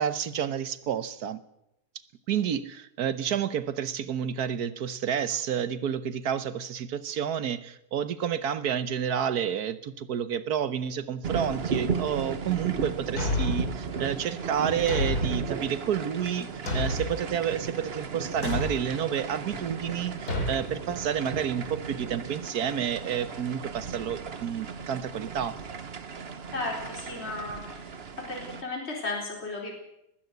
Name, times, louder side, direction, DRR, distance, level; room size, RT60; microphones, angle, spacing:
voice 1, 0.0-1.4 2.3-16.5 16.7-25.6, right 8 dB, 70° right, 14 dB, 1.4 m, -30 dB
sound 1, 11.2-28.6, right 5 dB, 40° right, 1.2 m, -35 dB
Thump thud, 13.2-13.8 14.9-15.5 16.7-17.2 18.4-18.9 20.3-20.6, left 2 dB, 65° left, 3.8 m, -29 dB
voice 2, 26.5-27.8 28.3-29.7, left 2 dB, 40° left, -2 dB, 4.6 m, -34 dB
20.0 x 16.0 x 8.1 m, 0.84 s
omnidirectional pair, 1.8 m